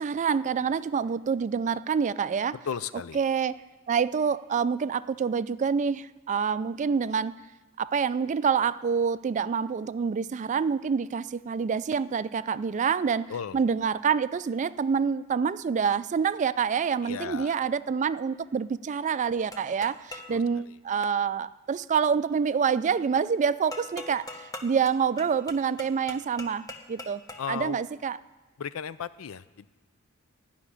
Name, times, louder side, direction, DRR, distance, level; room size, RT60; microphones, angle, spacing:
voice 1, 0.0-2.6 3.1-3.6 3.9-7.3 7.8-27.2 27.5-28.2, right 6 dB, 35° right, 16 dB, 0.3 m, -27 dB
voice 2, 2.7-3.2 13.3-13.6 17.0-17.6 20.3-20.4 27.4-27.8 28.6-29.7, left 7 dB, 80° left, 16 dB, 0.5 m, -35 dB
sound 1, 19.5-20.4 23.7-27.6, left 2 dB, 15° left, 1.0 m, -42 dB
13.5 x 5.9 x 9.8 m, 1.3 s
head